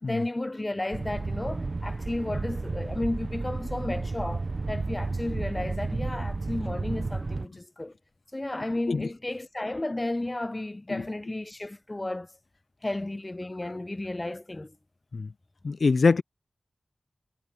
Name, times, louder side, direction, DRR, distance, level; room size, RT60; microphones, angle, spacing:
voice 1, 0.0-7.9 8.3-12.3 12.8-14.8, left 2 dB, 30° left, 0.7 m, -33 dB
sound 1, 0.9-7.5, right 3 dB, 55° right, 0.7 m, -32 dB
voice 2, 15.6-16.2, left 4 dB, 70° left, 0.3 m, -24 dB
wide cardioid pair, 55°, 0 cm